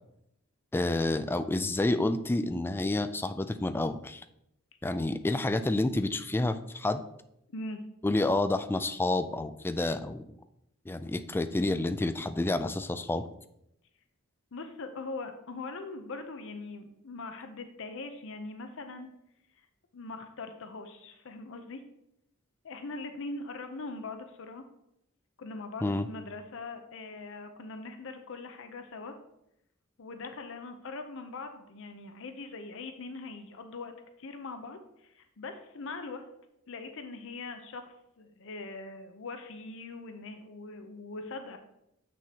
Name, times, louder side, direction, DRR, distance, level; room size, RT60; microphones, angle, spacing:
voice 1, 0.7-4.2 4.8-7.0 8.0-10.3 10.9-13.3 25.8-26.1, left 2 dB, 10° left, 10 dB, 0.3 m, -29 dB
voice 2, 14.5-19.1 19.9-21.8 22.6-24.6 25.4-29.1 30.0-36.3 36.7-41.6, left 3 dB, 65° left, 7 dB, 0.6 m, -41 dB
7.6 x 6.2 x 2.9 m, 0.80 s
head